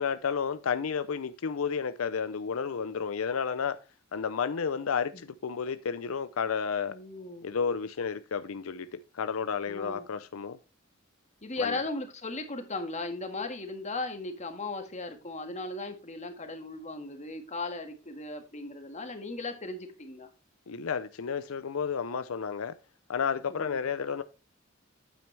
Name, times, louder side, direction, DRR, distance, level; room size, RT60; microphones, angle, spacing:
voice 1, 0.0-3.8 4.1-6.9 7.4-10.6 11.6-11.8 20.7-22.7 23.1-24.2, left 6 dB, 85° left, 0.5 m, -31 dB
voice 2, 6.9-7.5 9.7-10.1 11.4-20.3 23.5-23.8, left 2 dB, 35° left, 1.8 m, -37 dB
9.2 x 8.7 x 3.3 m
head